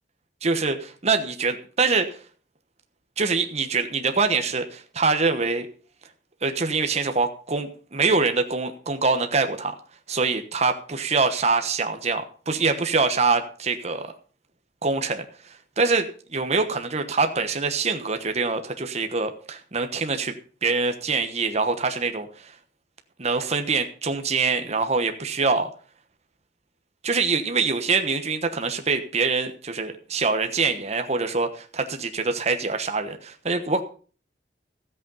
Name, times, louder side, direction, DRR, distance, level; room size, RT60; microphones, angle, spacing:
voice 1, 0.4-2.1 3.2-5.7 6.4-9.7 10.1-14.1 14.8-15.2 15.8-20.3 20.6-22.5 23.2-25.7 27.0-33.8, right 4 dB, 40° right, 7 dB, 1.2 m, -24 dB
13.5 x 8.3 x 5.5 m, 0.40 s
head